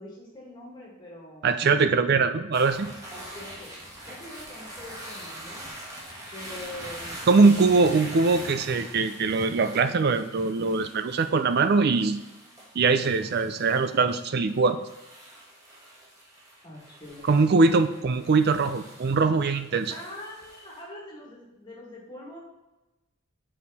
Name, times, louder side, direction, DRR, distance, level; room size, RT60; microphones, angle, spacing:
voice 1, 0.0-1.5 1.9-2.3 3.1-3.7 4.0-5.7 6.3-7.2 16.6-17.4 19.9-22.4, left 1 dB, 25° left, -5 dB, 2.3 m, -43 dB
voice 2, 1.4-2.9 7.3-12.2 12.7-14.8 17.3-19.9, right 4 dB, 55° right, 11 dB, 0.4 m, -22 dB
sound 1, 2.5-20.8, right 1 dB, 15° right, 1.7 m, -44 dB
7.2 x 4.8 x 4.1 m, 1.0 s
head